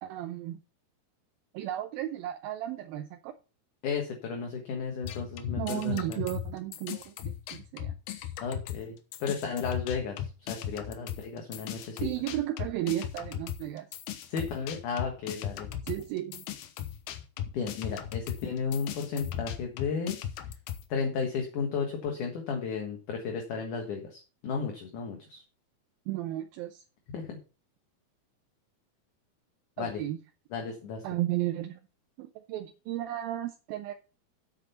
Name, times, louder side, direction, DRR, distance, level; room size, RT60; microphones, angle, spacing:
voice 1, 0.0-0.6 1.5-3.3 5.6-7.9 12.0-13.9 15.8-16.5 26.1-26.8 29.8-30.2 31.0-31.8 32.2-33.9, right 14 dB, 80° right, 7 dB, 2.5 m, -34 dB
voice 2, 3.8-6.2 8.4-12.1 14.3-15.7 17.5-20.2 20.9-25.4 27.1-27.4 29.8-30.0 30.5-31.0, left 5 dB, 60° left, 2 dB, 2.8 m, -34 dB
sound 1, 5.0-8.9 9.1-20.9, left 10 dB, 85° left, 2.9 m, -37 dB
8.4 x 7.5 x 5.6 m, 0.33 s
omnidirectional pair, 4.4 m